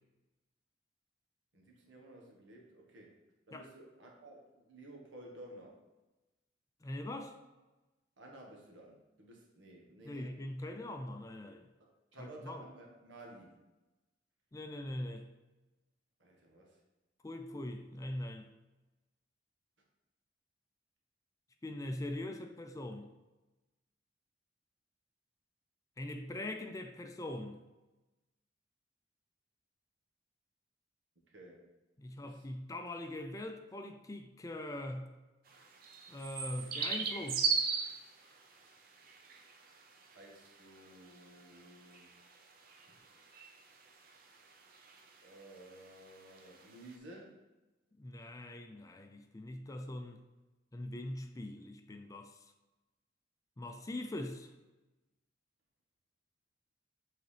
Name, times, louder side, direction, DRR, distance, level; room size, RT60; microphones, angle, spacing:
voice 1, 1.5-3.2 3.5-5.8 8.2-10.4 11.8-13.5 16.2-16.8 31.3-31.7 32.2-32.5 40.1-42.1 42.9-43.0 45.2-47.4, right 1 dB, 90° right, 1.4 m, -54 dB
voice 2, 6.8-7.4 10.0-11.7 12.2-12.7 14.5-15.3 17.2-18.5 21.6-23.1 26.0-27.6 32.0-35.1 36.1-37.5 48.0-50.2 50.7-52.5 53.6-54.5, left 1 dB, 20° left, 0.4 m, -42 dB
sound 1, 35.5-46.9, right 5 dB, 50° right, 0.7 m, -39 dB
7.8 x 3.9 x 3.3 m
head